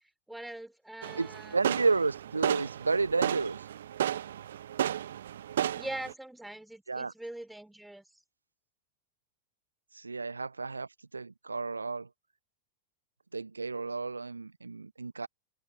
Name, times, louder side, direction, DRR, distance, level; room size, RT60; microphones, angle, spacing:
voice 1, 0.3-2.0 5.7-8.0, right 1 dB, 5° right, 4.7 m, -43 dB
sound 1, 1.0-6.1, right 10 dB, 60° right, 1.4 m, -33 dB
voice 2, 1.2-3.6 6.9-7.1 9.9-10.9 11.1-12.1 13.3-15.3, right 4 dB, 80° right, 1.2 m, -31 dB
figure-of-eight pair, 90°, 0 cm